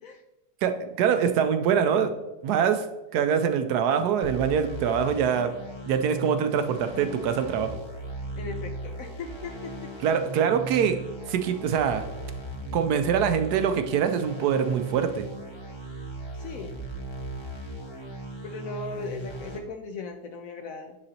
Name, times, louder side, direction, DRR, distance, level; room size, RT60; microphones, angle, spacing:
voice 1, 0.6-2.1 2.4-2.9 3.1-5.5 5.9-7.8 10.0-11.0 11.3-12.1 12.7-15.3, right 7 dB, 75° right, 8 dB, 1.1 m, -24 dB
sound 1, 4.2-19.6, right 2 dB, 25° left, 0.6 m, -38 dB
voice 2, 8.4-9.5 16.3-16.8 18.4-21.0, left 4 dB, 70° left, 4 dB, 0.8 m, -38 dB
9.8 x 3.9 x 2.8 m, 1.0 s
omnidirectional pair, 1.8 m